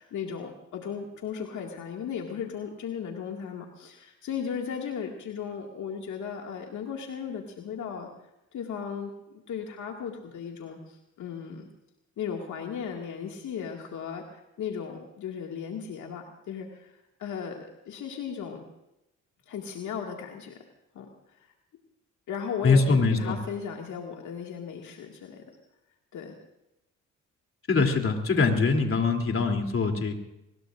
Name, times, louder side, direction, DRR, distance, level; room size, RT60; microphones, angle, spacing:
voice 1, 0.0-8.1 8.5-9.1 9.5-11.7 12.2-16.9 17.2-18.6 19.5-20.6 20.9-21.1 22.3-25.4 26.1-26.4, left 7 dB, 70° left, 1 dB, 2.1 m, -36 dB
voice 2, 22.6-23.4 27.7-30.1, left 4 dB, 45° left, 3 dB, 3.1 m, -23 dB
23.0 x 21.0 x 2.5 m, 0.89 s
supercardioid pair, 70°, 31 cm